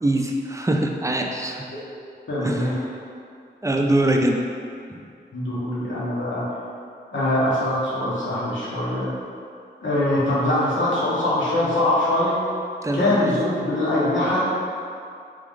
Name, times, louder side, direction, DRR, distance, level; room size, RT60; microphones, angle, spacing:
voice 1, 0.0-1.7 2.4-2.8 3.6-4.4 4.9-5.0 12.8-13.3, right 1 dB, 15° right, 2 dB, 0.4 m, -23 dB
voice 2, 2.3-2.7 5.3-6.4 7.1-9.1 9.8-12.4 12.9-14.4, left 1 dB, 80° left, -9 dB, 1.2 m, -22 dB
3.4 x 2.5 x 3.6 m, 2.3 s
cardioid pair, 40°, 19 cm